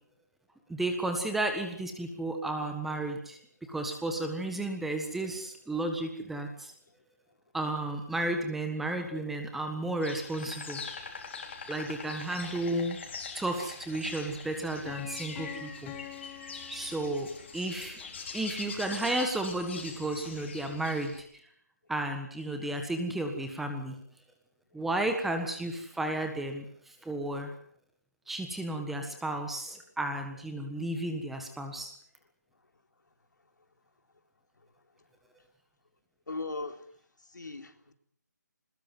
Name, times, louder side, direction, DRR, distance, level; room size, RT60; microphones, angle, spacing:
voice 1, 0.7-3.4 3.7-6.7 7.5-10.8 11.7-13.0 13.3-15.9 16.7-18.0 18.3-21.3 21.9-24.0 24.7-26.6 27.0-27.5 28.3-31.9, right 1 dB, ahead, 5 dB, 1.5 m, -33 dB
Insect, 10.0-21.2, left 5 dB, 40° left, 4.3 m, -43 dB
Piano, 14.9-17.6, left 13 dB, 15° left, 1.4 m, -46 dB
voice 2, 36.3-36.9 37.3-37.9, left 3 dB, 85° left, 6 dB, 3.7 m, -39 dB
22.0 x 20.5 x 7.8 m, 0.62 s
hypercardioid pair, 165°, 10 cm